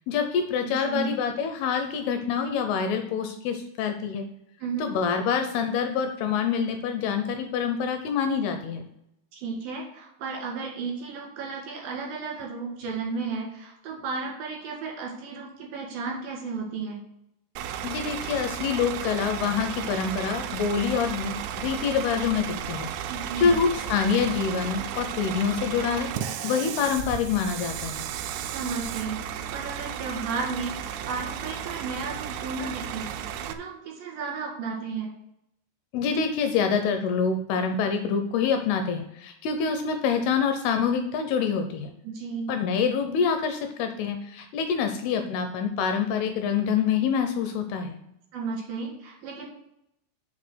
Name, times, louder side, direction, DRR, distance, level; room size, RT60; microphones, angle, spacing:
voice 1, 0.1-4.3 4.8-8.9 17.8-22.9 23.4-28.0 35.9-41.9 42.5-48.0, left 6 dB, 80° left, 6 dB, 2.5 m, -26 dB
voice 2, 0.6-1.1 4.6-4.9 9.3-17.0 23.1-23.5 28.4-35.1 42.0-42.5 48.3-49.5, right 4 dB, 65° right, -1 dB, 3.4 m, -34 dB
Bus / Idling, 17.6-33.5, right 9 dB, 85° right, 2.4 m, -34 dB
6.4 x 6.0 x 6.2 m, 0.81 s
omnidirectional pair, 5.0 m